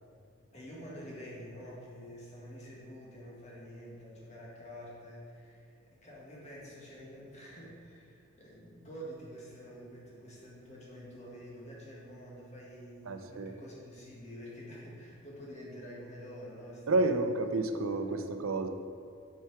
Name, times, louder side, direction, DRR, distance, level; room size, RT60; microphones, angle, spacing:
voice 1, 0.5-17.5 18.1-18.2, equal, 35° left, -5 dB, 1.7 m, -48 dB
voice 2, 13.1-13.5 16.9-18.7, right 2 dB, 90° right, 7 dB, 0.5 m, -30 dB
7.3 x 4.7 x 4.7 m, 2.4 s
head